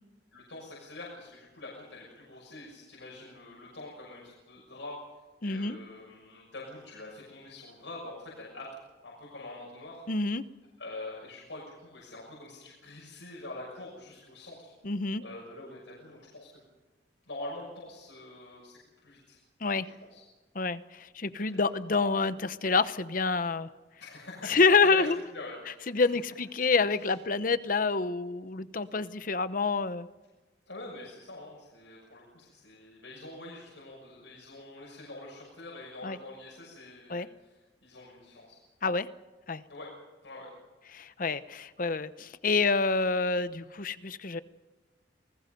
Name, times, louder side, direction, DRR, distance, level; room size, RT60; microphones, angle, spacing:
voice 1, 0.3-5.1 5.4-8.8 9.0-10.0 10.8-14.7 15.2-16.6 17.3-19.4 19.8-20.2 21.4-21.6 24.0-26.1 27.0-27.1 30.7-38.6 39.7-39.9 40.2-40.5, left 2 dB, 85° left, -4 dB, 6.4 m, -45 dB
voice 2, 5.4-5.8 10.1-10.4 14.8-15.2 19.6-19.9 20.5-23.7 24.5-25.2 25.9-30.1 36.0-36.2 37.1-37.3 38.8-39.1 39.5-39.6 40.9-44.4, left 4 dB, 50° left, 13 dB, 0.9 m, -27 dB
28.5 x 20.0 x 5.4 m, 1.2 s
head